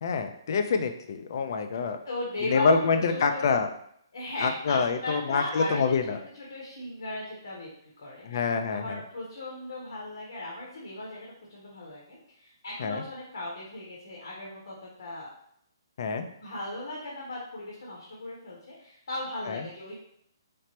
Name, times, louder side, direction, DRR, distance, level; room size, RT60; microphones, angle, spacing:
voice 1, 0.0-2.0 2.4-3.7 4.4-6.2 8.2-9.0 12.8-13.0 16.0-16.3 19.5-19.6, left 5 dB, 55° left, 7 dB, 0.3 m, -26 dB
voice 2, 2.0-3.5 4.1-5.9 6.3-7.7 8.0-15.3 16.4-19.9, left 1 dB, 75° left, -4 dB, 0.9 m, -37 dB
3.2 x 2.0 x 2.8 m, 0.70 s
hypercardioid pair, 140°, 2 cm